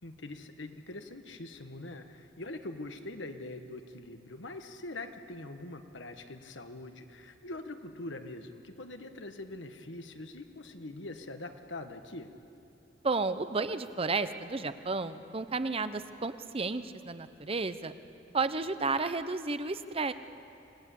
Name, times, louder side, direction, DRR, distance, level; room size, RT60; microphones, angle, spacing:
voice 1, 0.0-12.3, left 2 dB, 75° left, 7 dB, 1.5 m, -43 dB
voice 2, 13.0-17.9 18.3-20.1, right 3 dB, 30° right, 11 dB, 0.8 m, -32 dB
28.0 x 18.5 x 8.6 m, 2.8 s
head